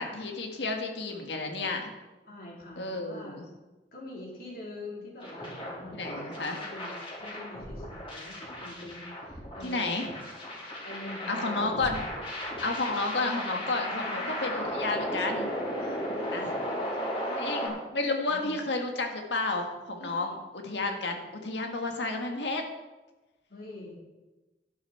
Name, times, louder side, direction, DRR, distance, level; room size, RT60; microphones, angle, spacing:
voice 1, 0.0-1.9 2.8-3.4 5.9-6.6 9.6-10.1 11.3-12.1 12.6-15.5 16.3-16.5 17.4-22.6, left 3 dB, 80° left, 3 dB, 1.8 m, -31 dB
voice 2, 2.3-3.5 3.9-10.2 10.8-12.0 13.2-14.7 15.8-17.7 18.3-18.5 20.0-20.2 23.5-24.0, left 1 dB, 55° left, -3 dB, 4.1 m, -45 dB
sound 1, 5.2-17.7, equal, 30° left, 4.6 m, -35 dB
12.0 x 11.5 x 4.5 m, 1.1 s
head